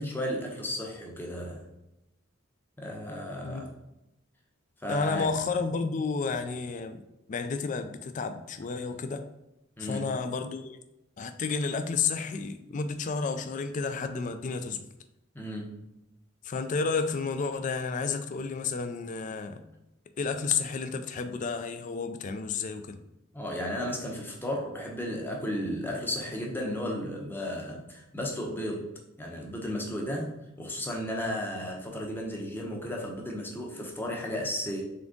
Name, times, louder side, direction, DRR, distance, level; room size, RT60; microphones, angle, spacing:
voice 1, 0.0-1.7 2.8-3.7 4.8-5.3 9.8-10.1 15.3-15.7 23.3-28.9 29.2-34.9, equal, 10° left, 0 dB, 0.7 m, -34 dB
voice 2, 4.9-7.0 7.3-9.2 9.8-10.8 11.2-14.9 16.4-19.6 20.2-23.0, left 4 dB, 40° left, 8 dB, 0.4 m, -31 dB
3.8 x 3.5 x 3.7 m, 0.90 s
head